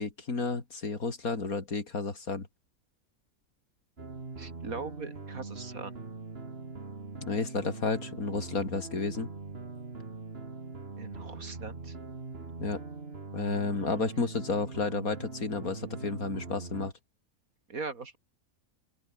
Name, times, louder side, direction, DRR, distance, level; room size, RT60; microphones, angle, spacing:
voice 1, 0.0-2.5 7.3-9.3 12.6-12.8 13.3-16.9, left 4 dB, 75° left, 3.6 m, -32 dB
sound 1, 4.0-16.9, right 3 dB, 45° right, 2.5 m, -42 dB
voice 2, 4.4-5.9 11.0-11.9 13.7-13.9 17.7-18.2, right 4 dB, 75° right, 3.3 m, -40 dB
open air
omnidirectional pair, 1.5 m